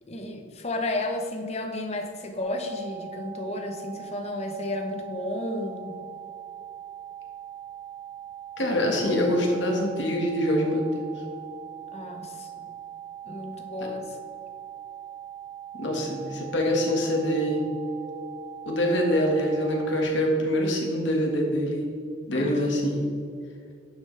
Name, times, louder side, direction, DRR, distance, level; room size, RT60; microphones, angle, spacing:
voice 1, 0.0-6.0 11.9-12.5 13.3-14.2 22.3-22.7, left 1 dB, 35° left, 4 dB, 0.8 m, -32 dB
sound 1, 2.4-20.0, right 10 dB, 15° left, 1.4 m, -41 dB
voice 2, 8.6-10.8 15.8-17.7 18.7-21.9 22.3-23.1, equal, 70° left, 0 dB, 1.7 m, -25 dB
11.0 x 6.5 x 3.3 m, 2.4 s
head